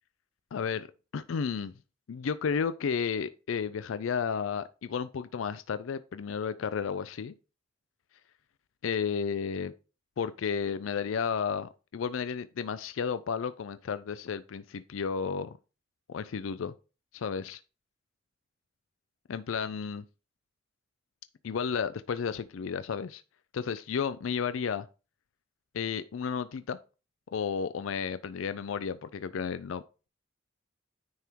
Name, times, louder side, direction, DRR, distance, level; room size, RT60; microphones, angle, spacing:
voice 1, 0.5-0.9 1.1-1.7 2.1-7.3 8.8-9.7 10.2-15.5 16.1-16.7 17.1-17.6 19.3-20.0 21.4-23.2 23.5-24.9 25.7-26.8 27.3-29.8, left 6 dB, 85° left, 0.4 m, -32 dB
9.6 x 3.5 x 4.5 m
head